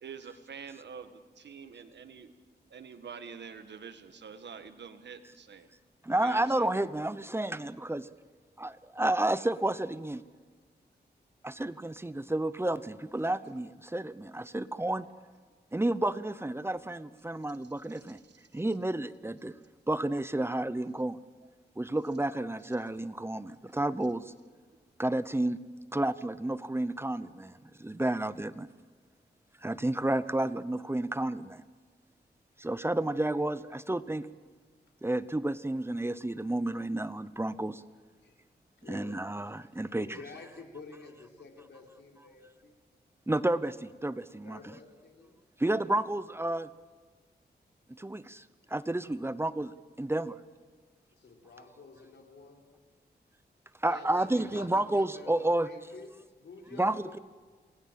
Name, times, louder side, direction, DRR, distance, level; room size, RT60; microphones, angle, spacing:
voice 1, 0.0-1.1 1.4-2.3 2.7-5.7 6.2-6.7, right 6 dB, 85° right, 9 dB, 1.7 m, -46 dB
voice 2, 6.0-8.1 8.6-10.2 11.4-15.1 15.7-18.2 18.5-19.5 19.9-21.2 21.8-24.3 25.0-25.6 25.9-28.7 29.6-31.6 32.6-34.3 35.0-37.8 38.9-40.2 43.3-44.8 45.6-46.7 48.0-50.4 53.8-55.7 56.7-57.2, right 1 dB, 15° right, 14 dB, 0.8 m, -31 dB
voice 3, 38.8-39.2 40.0-42.7 44.4-45.4 51.2-52.6 53.9-57.2, left 4 dB, 85° left, 2 dB, 3.8 m, -49 dB
28.0 x 19.5 x 7.6 m, 1.5 s
wide cardioid pair, 105°, 18 cm